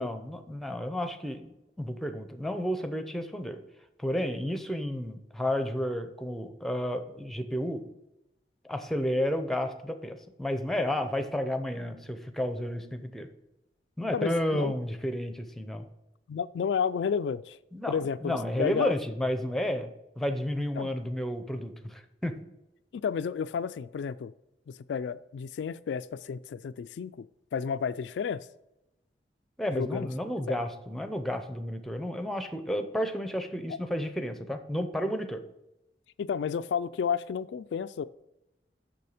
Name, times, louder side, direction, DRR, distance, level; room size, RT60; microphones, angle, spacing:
voice 1, 0.0-3.6 4.0-7.8 8.6-13.3 14.0-15.9 17.7-19.9 20.2-22.4 29.6-35.4, equal, ahead, 0.6 m, -31 dB
voice 2, 14.1-14.7 16.3-17.6 17.9-18.9 20.7-20.9 22.9-24.3 24.7-27.3 27.5-28.5 29.7-30.1 30.5-30.6 36.2-38.1, left 6 dB, 85° left, 0.3 m, -31 dB
6.9 x 6.3 x 5.0 m
head